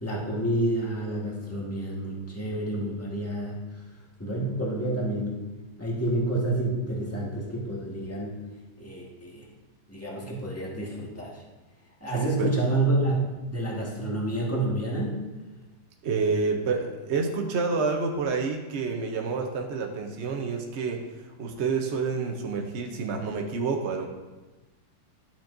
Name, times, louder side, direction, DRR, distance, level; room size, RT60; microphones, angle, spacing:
voice 1, 0.0-3.6 4.2-5.4 5.8-8.4 8.8-9.4 9.9-11.3 12.0-13.2 13.5-15.2, right 1 dB, 10° left, -4 dB, 1.4 m, -29 dB
voice 2, 12.1-12.5 16.0-21.1 21.4-24.1, right 4 dB, 55° right, 2 dB, 0.8 m, -28 dB
11.5 x 6.9 x 2.6 m, 1.1 s
omnidirectional pair, 1.9 m